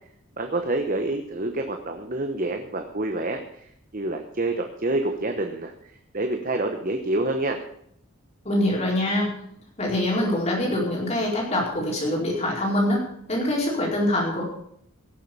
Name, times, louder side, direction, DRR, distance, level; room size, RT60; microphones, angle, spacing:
voice 1, 0.4-5.7 6.1-7.6, right 2 dB, 40° right, 5 dB, 1.0 m, -27 dB
voice 2, 8.4-9.3 9.8-13.0 13.3-14.4, left 1 dB, 30° left, -2 dB, 4.6 m, -24 dB
17.0 x 7.6 x 6.9 m, 0.70 s
head